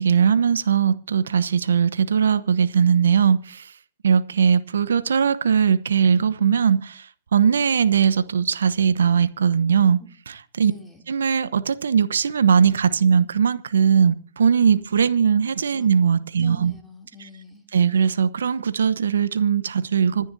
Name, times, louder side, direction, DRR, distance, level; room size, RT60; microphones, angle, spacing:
voice 1, 0.0-3.7 4.0-10.7 11.1-16.7 17.7-20.3, right 7 dB, 70° right, 0.9 m, -20 dB
voice 2, 10.6-11.0 15.8-15.9 16.4-17.7, left 1 dB, ahead, 2.9 m, -44 dB
26.0 x 10.5 x 2.7 m
hypercardioid pair, 115°, 0 cm